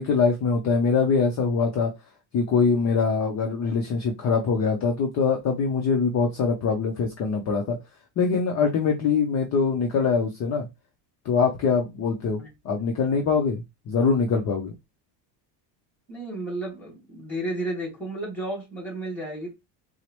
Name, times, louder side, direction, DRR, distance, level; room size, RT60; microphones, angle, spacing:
voice 1, 0.0-1.9 2.3-7.8 8.2-10.7 11.2-14.7, left 5 dB, 35° left, 0.6 m, -23 dB
voice 2, 16.1-19.5, right 1 dB, 5° left, 2.0 m, -32 dB
4.5 x 2.1 x 3.0 m
cardioid pair, 140°, 50 cm